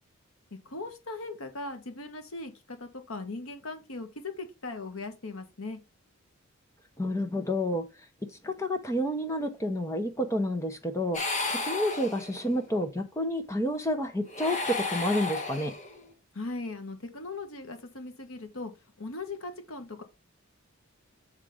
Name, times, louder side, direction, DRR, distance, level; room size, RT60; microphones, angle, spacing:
voice 1, 0.6-5.8 16.3-18.7 19.0-20.0, left 3 dB, 85° left, 1.5 m, -39 dB
voice 2, 7.0-7.9 8.2-15.7, left 1 dB, 15° left, 0.8 m, -30 dB
sound 1, 11.1-12.6 14.2-16.1, left 3 dB, 35° left, 1.7 m, -33 dB
7.4 x 3.7 x 5.0 m
head